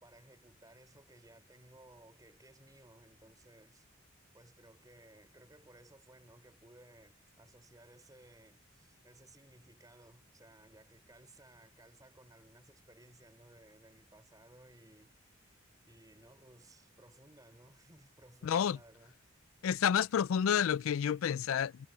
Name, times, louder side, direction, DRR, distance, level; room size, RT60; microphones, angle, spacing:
voice 1, 0.0-3.9 4.3-15.6 15.8-19.1, right 1 dB, 20° right, 5.5 m, -60 dB
voice 2, 18.4-18.8 19.6-21.9, left 8 dB, 90° left, 0.4 m, -30 dB
head